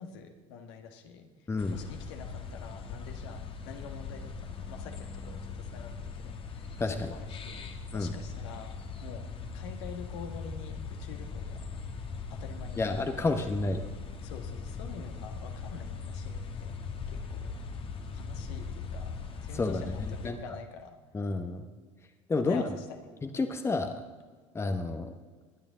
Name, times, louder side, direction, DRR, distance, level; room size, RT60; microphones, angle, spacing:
voice 1, 0.0-1.3 1.7-9.2 9.5-11.6 12.3-12.9 13.2-13.6 14.2-16.8 17.1-17.5 18.1-19.1 19.4-20.9 22.4-22.8, left 6 dB, 60° left, 5 dB, 1.6 m, -46 dB
voice 2, 1.5-1.8 6.8-7.1 7.9-8.1 12.8-13.9 19.5-20.6 21.1-21.7 22.3-22.6 23.2-23.9 24.5-25.1, left 3 dB, 15° left, 8 dB, 1.0 m, -30 dB
sound 1, 1.6-20.3, left 5 dB, 35° left, 1.6 m, -40 dB
21.5 x 10.5 x 3.8 m, 1.4 s
figure-of-eight pair, 65°, 16 cm